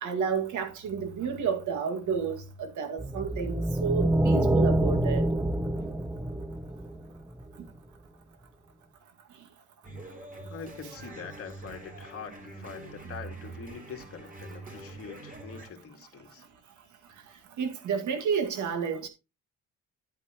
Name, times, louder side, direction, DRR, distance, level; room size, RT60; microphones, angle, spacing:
voice 1, 0.0-5.2 17.6-19.1, right 6 dB, 75° right, 2.1 m, -31 dB
sound 1, 3.0-7.4, right 1 dB, 10° right, 0.8 m, -26 dB
Lockdown Bluez, 9.8-15.7, right 3 dB, 25° right, 3.6 m, -44 dB
voice 2, 10.5-16.5, left 6 dB, 50° left, 2.1 m, -44 dB
10.0 x 9.0 x 3.0 m
cardioid pair, 90°, 30 cm